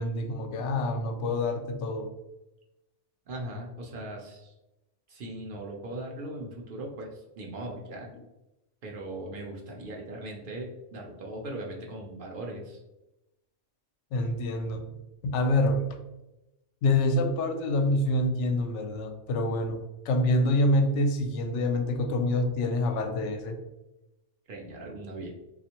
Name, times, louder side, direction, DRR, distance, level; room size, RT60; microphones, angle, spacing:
voice 1, 0.0-2.1 14.1-14.8 15.2-15.9 16.8-23.6, left 1 dB, 80° left, 5 dB, 0.9 m, -26 dB
voice 2, 3.3-4.5 5.1-8.1 8.8-12.8 24.5-25.3, right 1 dB, 55° right, -1 dB, 0.7 m, -39 dB
3.3 x 2.4 x 2.8 m, 0.96 s
omnidirectional pair, 1.2 m